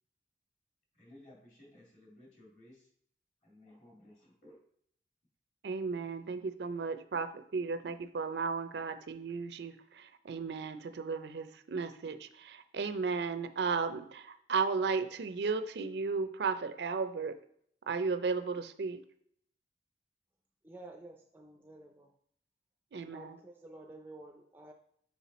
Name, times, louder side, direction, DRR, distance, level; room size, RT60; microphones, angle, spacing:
voice 1, 1.0-2.9 3.4-4.6, left 1 dB, 40° left, -3 dB, 2.2 m, -57 dB
voice 2, 5.6-17.4 17.9-19.0 22.9-23.4, right 4 dB, 75° right, 11 dB, 0.4 m, -35 dB
voice 3, 20.6-22.1 23.1-24.7, right 2 dB, 10° right, 2 dB, 0.4 m, -51 dB
5.7 x 4.5 x 4.1 m, 0.68 s
head